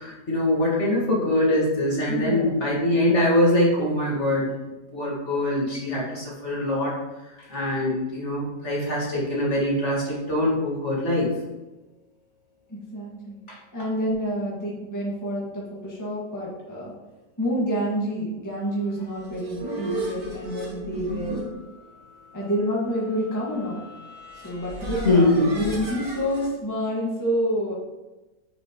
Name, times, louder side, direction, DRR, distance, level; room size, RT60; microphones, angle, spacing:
voice 1, 0.0-4.5 4.9-6.9 7.5-11.3 13.5-13.6 25.0-25.5, left 1 dB, 45° left, -5 dB, 2.2 m, -23 dB
voice 2, 2.1-2.6 12.7-13.4 13.7-16.9 17.4-21.4 22.3-23.8 24.3-27.7, equal, 10° left, -5 dB, 1.5 m, -28 dB
sound 1, 19.0-26.5, right 1 dB, 25° right, 2.1 m, -36 dB
7.1 x 6.6 x 3.0 m, 1.1 s
omnidirectional pair, 1.8 m